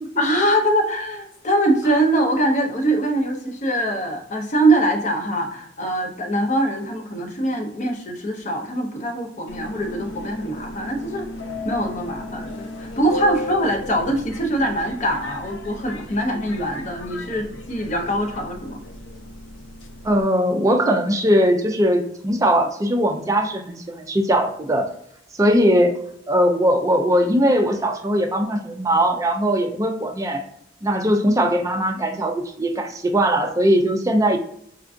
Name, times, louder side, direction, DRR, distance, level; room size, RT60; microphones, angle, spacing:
voice 1, 0.2-11.3 11.6-18.8, right 1 dB, 40° left, 3 dB, 0.7 m, -23 dB
Subway metro underground, 9.5-20.2, left 1 dB, 80° left, 0.5 m, -35 dB
voice 2, 20.0-24.9 25.4-26.0 26.3-30.4 30.8-34.4, equal, 20° right, 5 dB, 0.4 m, -20 dB
4.4 x 2.3 x 2.4 m, 0.71 s
head